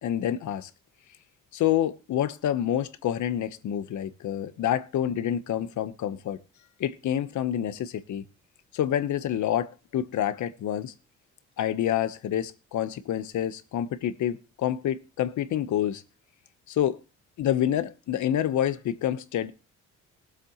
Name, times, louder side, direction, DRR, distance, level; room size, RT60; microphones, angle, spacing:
voice 1, 0.0-0.7 1.5-6.4 6.8-8.2 8.7-10.9 11.6-16.0 16.7-17.0 17.4-19.5, left 10 dB, 70° left, 1.2 m, -28 dB
19.5 x 7.7 x 3.1 m
cardioid pair, 90°, 30 cm